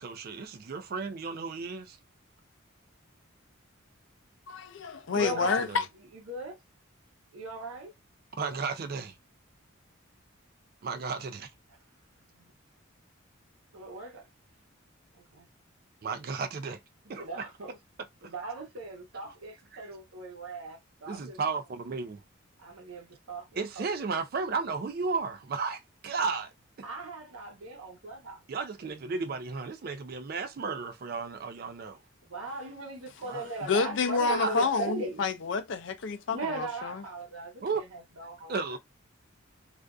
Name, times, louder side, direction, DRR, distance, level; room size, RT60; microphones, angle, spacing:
voice 1, 0.0-2.0 5.2-5.8 8.4-9.1 10.8-11.5 16.0-16.8 17.1-17.5 21.1-21.6 21.9-22.1 23.6-26.5 28.5-32.0 33.3-33.5 34.3-34.6 37.6-37.8 38.5-38.8, right 4 dB, 45° right, 0.3 m, -34 dB
voice 2, 4.5-5.9 33.7-37.0, left 4 dB, 60° left, 0.4 m, -29 dB
voice 3, 5.1-5.7 6.1-6.6 7.3-7.9 12.4-12.5 13.7-14.3 15.1-15.5 17.0-17.8 18.2-21.4 22.6-23.5 23.8-24.1 26.8-28.4 28.8-28.9 32.3-35.2 36.3-38.6, right 2 dB, 85° right, 0.8 m, -39 dB
2.4 x 2.4 x 2.3 m
head